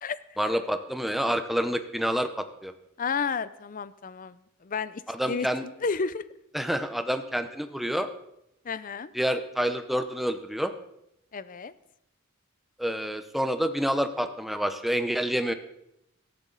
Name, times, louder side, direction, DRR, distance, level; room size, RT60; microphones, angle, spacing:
voice 1, 0.4-2.7 5.1-5.6 6.5-8.1 9.1-10.7 12.8-15.5, equal, ahead, 8 dB, 0.7 m, -28 dB
voice 2, 3.0-6.2 8.6-9.1 11.3-11.7, left 5 dB, 40° left, 16 dB, 0.5 m, -32 dB
17.5 x 13.5 x 4.0 m, 0.82 s
head